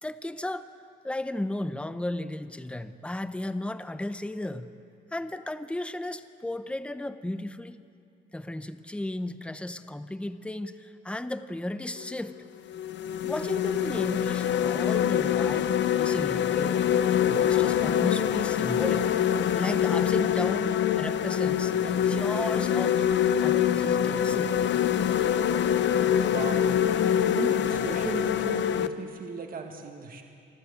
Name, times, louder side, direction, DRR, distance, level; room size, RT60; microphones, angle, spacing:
voice 1, 0.0-0.7 1.0-4.7 5.1-7.8 8.3-12.4 13.2-16.8 17.1-19.1 19.5-23.1 23.4-24.6, left 1 dB, 5° left, 11 dB, 0.8 m, -34 dB
sound 1, 12.0-12.1 12.7-28.9, left 9 dB, 65° left, 0.8 m, -25 dB
voice 2, 26.2-26.8 27.2-30.2, right 4 dB, 45° right, 3 dB, 1.8 m, -36 dB
25.0 x 14.0 x 8.1 m, 2.4 s
cardioid pair, 90°, 20 cm